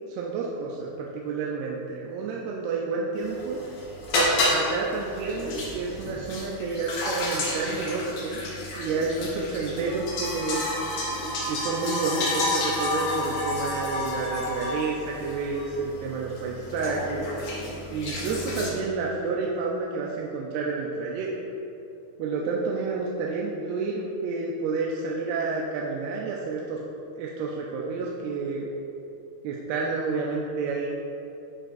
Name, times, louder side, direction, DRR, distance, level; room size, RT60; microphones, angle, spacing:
voice 1, 0.1-3.6 4.4-8.4 8.8-10.6 11.5-17.3 17.9-21.3 22.2-26.8 27.2-28.7 29.4-30.9, right 4 dB, 90° right, -3 dB, 2.6 m, -30 dB
sound 1, 3.2-18.7, left 1 dB, 85° left, 3.6 m, -30 dB
11.5 x 5.0 x 2.6 m, 2.8 s
omnidirectional pair, 4.4 m